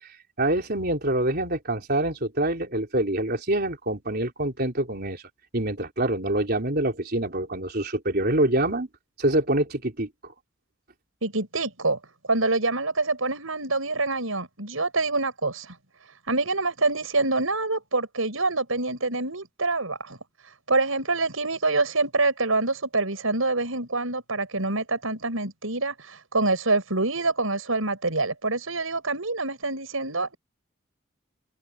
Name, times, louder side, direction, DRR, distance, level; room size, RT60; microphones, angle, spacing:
voice 1, 0.0-5.2 5.5-8.9 9.2-10.3, right 1 dB, 50° right, 4.2 m, -26 dB
voice 2, 11.2-12.0 12.3-15.7 16.3-20.2 20.7-30.4, right 3 dB, 85° right, 5.7 m, -26 dB
open air
head